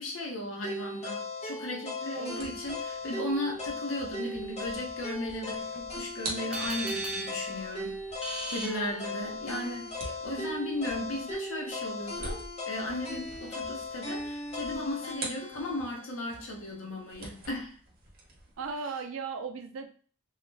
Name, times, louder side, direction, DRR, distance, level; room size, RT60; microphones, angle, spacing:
voice 1, 0.0-17.8, left 1 dB, 70° left, 0 dB, 0.8 m, -36 dB
sound 1, 0.6-16.7, left 2 dB, 30° left, 0.7 m, -38 dB
voice 2, 2.1-2.5 10.0-10.3 18.6-19.9, right 5 dB, 70° right, 6 dB, 0.4 m, -37 dB
sound 2, 2.3-16.0 16.3-18.8, right 2 dB, 45° right, 0.8 m, -46 dB
sound 3, 6.5-9.5, right 1 dB, 5° right, 0.5 m, -38 dB
2.3 x 2.2 x 3.2 m, 0.43 s
head